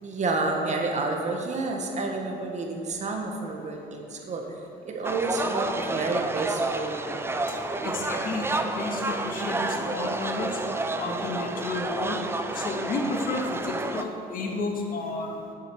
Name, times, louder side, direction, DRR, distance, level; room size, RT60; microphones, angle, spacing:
voice 1, 0.0-4.6 4.8-7.0, right 3 dB, 45° right, 2 dB, 1.8 m, -29 dB
sound 1, 5.0-14.0, right 2 dB, 15° right, 0.7 m, -30 dB
voice 2, 7.8-10.6 11.0-12.2 12.5-15.4, left 3 dB, 55° left, 1 dB, 2.0 m, -32 dB
10.5 x 8.5 x 6.4 m, 2.7 s
cardioid pair, 110°, 17 cm